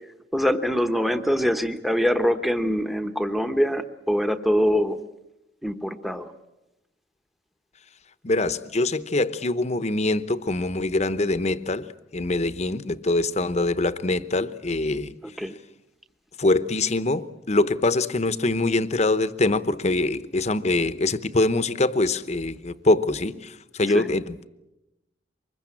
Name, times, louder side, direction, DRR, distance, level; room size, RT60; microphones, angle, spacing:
voice 1, 0.3-5.0 5.6-6.3 15.2-15.6 23.9-24.1, equal, ahead, 9 dB, 1.0 m, -24 dB
voice 2, 8.2-11.9 12.1-15.1 16.4-24.5, left 2 dB, 40° left, 14 dB, 0.9 m, -24 dB
24.5 x 21.5 x 8.7 m, 0.95 s
head